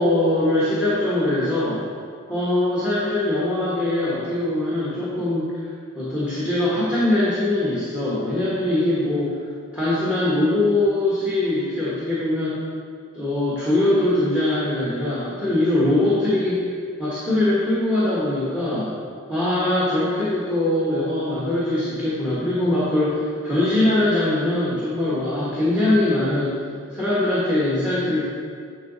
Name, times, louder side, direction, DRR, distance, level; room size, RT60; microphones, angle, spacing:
voice 1, 0.0-1.8 2.3-5.5 5.9-9.3 9.7-12.6 13.1-16.6 17.0-18.9 19.3-26.5 26.9-28.3, left 1 dB, 5° right, -9 dB, 1.4 m, -22 dB
10.0 x 3.9 x 4.0 m, 2.1 s
head